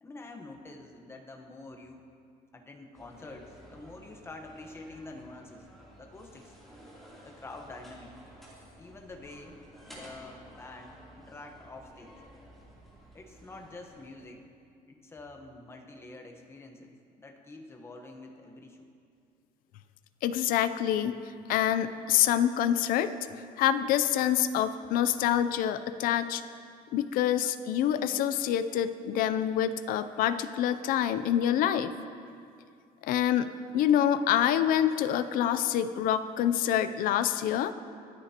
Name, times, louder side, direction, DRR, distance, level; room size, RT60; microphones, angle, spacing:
voice 1, 0.0-2.1 2.5-5.7 6.0-6.6 7.2-8.1 8.8-9.6 9.8-12.2 13.1-14.4 14.9-18.9, left 2 dB, 15° left, 3 dB, 1.1 m, -47 dB
sound 1, 2.9-14.1, equal, ahead, 3.0 m, -53 dB
voice 2, 20.2-21.2 21.5-23.1 23.6-26.4 26.9-31.9 33.0-33.5 33.7-37.7, left 10 dB, 70° left, 12 dB, 0.5 m, -26 dB
25.5 x 8.9 x 2.9 m, 2.4 s
cardioid pair, 160°, 15 cm